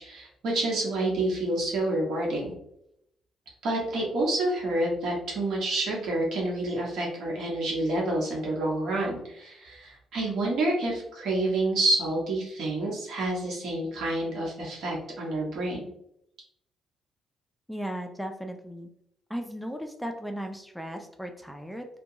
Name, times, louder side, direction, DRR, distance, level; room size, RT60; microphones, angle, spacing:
voice 1, 0.0-2.5 3.6-15.9, right 2 dB, 75° right, -3 dB, 1.0 m, -28 dB
voice 2, 17.7-18.9 19.3-21.9, equal, ahead, 5 dB, 0.3 m, -36 dB
2.8 x 2.2 x 2.6 m, 0.77 s
cardioid pair, 90°, 0 cm